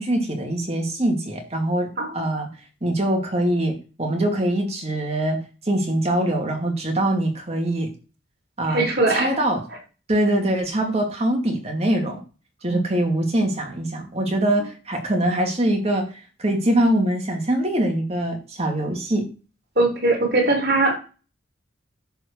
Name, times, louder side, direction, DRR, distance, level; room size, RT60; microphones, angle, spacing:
voice 1, 0.0-2.5 2.8-5.4 5.7-7.9 8.6-9.6 10.1-12.2 12.6-16.1 16.4-19.3, right 1 dB, 35° right, 2 dB, 2.4 m, -23 dB
voice 2, 8.7-9.4 12.7-12.8 19.8-21.0, right 2 dB, 55° right, 2 dB, 3.7 m, -21 dB
10.5 x 4.4 x 6.9 m, 0.34 s
head